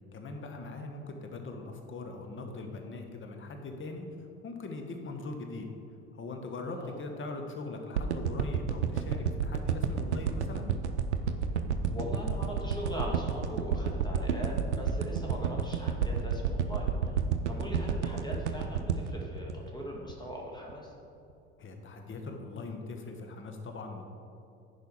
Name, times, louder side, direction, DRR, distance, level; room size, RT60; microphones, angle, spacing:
voice 1, 0.1-4.1 4.4-5.7 6.1-10.7 17.5-17.7 21.6-24.1, left 3 dB, 35° left, 4 dB, 1.3 m, -41 dB
voice 2, 6.6-6.9 11.9-17.2 17.5-20.9, equal, 15° left, -2 dB, 2.0 m, -40 dB
sound 1, 8.0-20.3 20.7-20.8, right 7 dB, 90° right, 0.5 m, -30 dB
10.5 x 4.9 x 4.8 m, 2.6 s
hypercardioid pair, 65°, 33 cm